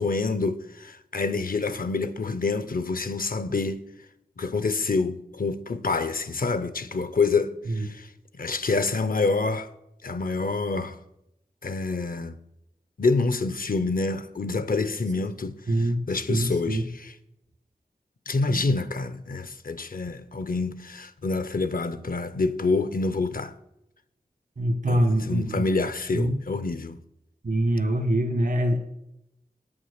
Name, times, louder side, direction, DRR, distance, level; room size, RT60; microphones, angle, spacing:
voice 1, 0.0-3.8 4.4-9.7 10.0-11.0 11.6-12.3 13.0-17.1 18.3-23.5 24.9-27.0, left 3 dB, 65° left, 0.7 m, -27 dB
voice 2, 15.7-16.8 18.5-18.6 24.6-25.7 26.1-26.4 27.4-28.8, right 1 dB, 75° right, 1.3 m, -24 dB
8.6 x 7.3 x 6.5 m
wide cardioid pair, 60°, 16 cm